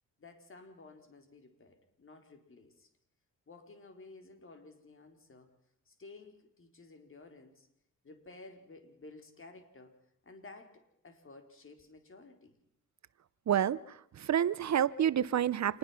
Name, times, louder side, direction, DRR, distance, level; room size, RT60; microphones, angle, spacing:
voice 1, 0.2-2.9 3.5-5.6 5.9-7.7 8.0-12.6, left 3 dB, 40° left, 4.3 m, -54 dB
voice 2, 13.5-13.8 14.2-15.8, right 10 dB, 60° right, 0.8 m, -28 dB
27.5 x 20.5 x 5.9 m
cardioid pair, 95°, 32 cm